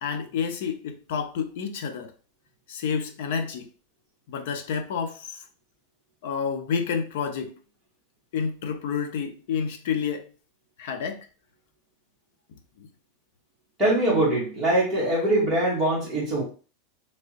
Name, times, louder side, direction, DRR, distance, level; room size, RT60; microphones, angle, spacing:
voice 1, 0.0-2.1 2.7-3.7 4.3-5.4 6.2-7.5 8.3-10.3 10.8-11.2 12.8-12.9, left 6 dB, 55° left, 0.5 m, -29 dB
voice 2, 13.8-16.4, right 1 dB, 5° right, 1.7 m, -22 dB
3.5 x 3.0 x 2.9 m
supercardioid pair, 180°, 0 cm